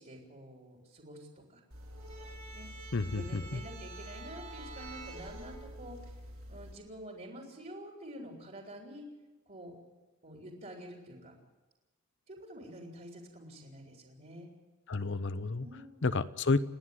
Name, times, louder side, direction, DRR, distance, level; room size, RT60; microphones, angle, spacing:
voice 1, 0.0-1.6 2.5-2.7 3.1-6.0 6.5-9.1 9.5-9.7 10.2-11.3 12.3-14.5 15.6-16.0, equal, 40° right, 0 dB, 3.6 m, -48 dB
sound 1, 1.7-6.7, right 1 dB, 65° right, 5.0 m, -46 dB
voice 2, 2.9-3.6 14.9-15.7 16.0-16.6, left 3 dB, 55° left, 14 dB, 0.7 m, -30 dB
30.0 x 10.0 x 9.6 m, 1.2 s
head